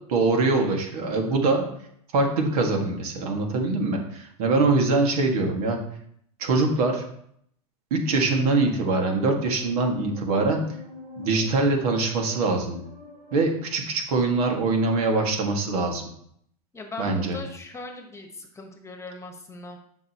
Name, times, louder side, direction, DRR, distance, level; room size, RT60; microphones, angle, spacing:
voice 1, 0.1-1.6 2.1-5.8 6.4-7.0 7.9-10.6 11.2-12.8 13.3-16.0 17.0-17.4, right 3 dB, 70° right, 2 dB, 2.1 m, -23 dB
sound 1, 8.2-13.5, left 2 dB, 40° right, 3.5 m, -44 dB
voice 2, 16.7-19.8, left 2 dB, 15° left, 3 dB, 1.4 m, -39 dB
12.0 x 5.4 x 3.1 m, 0.68 s
hypercardioid pair, 115°, 20 cm